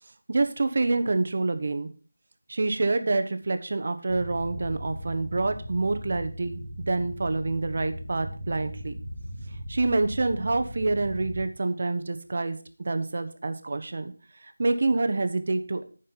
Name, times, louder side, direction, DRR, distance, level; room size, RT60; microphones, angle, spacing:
voice 1, 0.3-1.9 2.5-6.6 6.9-9.0 9.7-12.6 12.8-14.1 14.4-15.8, right 3 dB, 40° right, 9 dB, 1.1 m, -27 dB
sound 1, 4.1-11.4, equal, 55° left, 2.8 m, -38 dB
10.5 x 5.4 x 5.8 m, 0.38 s
figure-of-eight pair, 170°, 0 cm